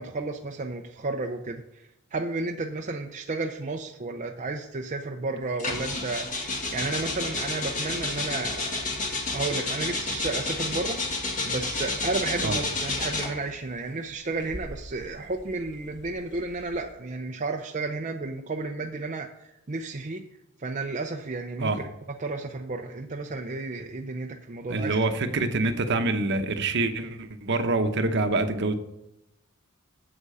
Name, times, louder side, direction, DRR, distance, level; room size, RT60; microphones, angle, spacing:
voice 1, 0.0-8.9 9.3-20.2 20.6-21.9 22.2-25.0, right 3 dB, 35° right, 2 dB, 0.6 m, -32 dB
sound 1, 5.6-13.5 14.4-16.8, left 2 dB, 35° left, 1.7 m, -31 dB
voice 2, 24.7-28.7, right 2 dB, 55° right, 8 dB, 0.9 m, -26 dB
8.3 x 8.0 x 5.5 m, 0.89 s
head